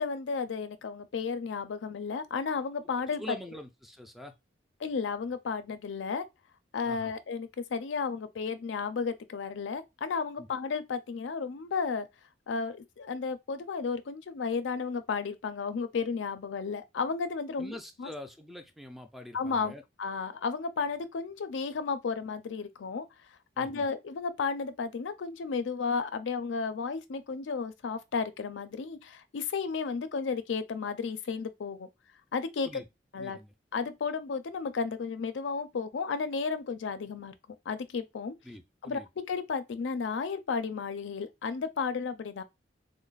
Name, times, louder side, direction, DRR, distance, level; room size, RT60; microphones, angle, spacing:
voice 1, 0.0-3.4 4.8-6.2 6.7-12.1 12.5-18.1 19.3-23.1 23.6-31.9 32.3-32.8 33.1-33.4 33.7-37.3 37.7-38.4 38.8-39.0 39.3-42.4, left 5 dB, 85° left, 0.4 m, -33 dB
voice 2, 3.2-4.3 6.8-7.1 10.4-10.5 17.6-19.8 23.6-23.9 32.7-32.9 33.2-33.5 38.4-39.1, left 1 dB, ahead, 0.3 m, -44 dB
3.1 x 2.1 x 3.9 m
head